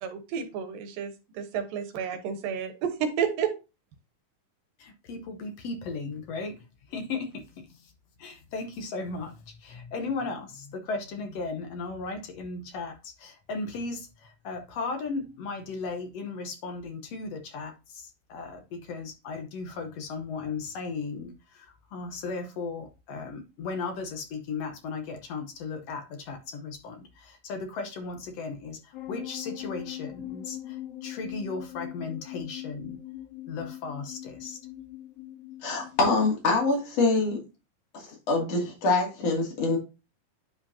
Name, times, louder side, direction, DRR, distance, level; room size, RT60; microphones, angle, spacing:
voice 1, 0.0-3.5, right 7 dB, 80° right, 2.8 m, -31 dB
voice 2, 4.8-6.6 6.9-7.9 8.2-33.0 33.5-34.6, left 4 dB, 70° left, 1.5 m, -36 dB
sound 1, 28.9-36.4, left 14 dB, 90° left, 2.7 m, -41 dB
voice 3, 35.6-37.4 37.9-39.8, left 3 dB, 50° left, 3.4 m, -25 dB
10.0 x 5.0 x 2.7 m
omnidirectional pair, 4.0 m